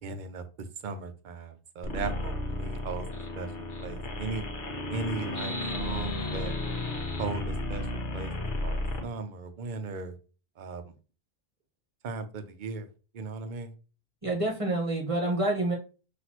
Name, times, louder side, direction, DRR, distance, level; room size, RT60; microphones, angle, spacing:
voice 1, 0.0-3.1 3.3-3.5 3.8-4.5 4.9-6.5 7.2-7.9 8.1-8.3 8.6-10.1 10.6-10.9 12.0-12.9 13.1-13.7, right 4 dB, 55° right, 8 dB, 0.7 m, -37 dB
sound 1, 1.8-9.0, left 2 dB, 55° left, 1.1 m, -33 dB
voice 2, 14.2-15.7, right 2 dB, 35° right, 0 dB, 1.0 m, -27 dB
6.0 x 2.6 x 2.8 m, 0.35 s
omnidirectional pair, 1.0 m